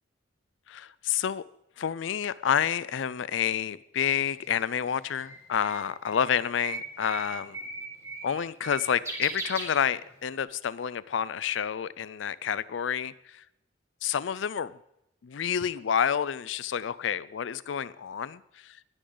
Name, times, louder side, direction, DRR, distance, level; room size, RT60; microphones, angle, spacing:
voice 1, 0.7-1.4 1.8-7.6 8.2-13.4 14.0-14.8 15.2-18.8, left 8 dB, 80° left, 19 dB, 0.4 m, -29 dB
Bird, 4.1-10.3, right 3 dB, 15° right, 2.0 m, -39 dB
19.5 x 10.0 x 3.9 m, 0.85 s
head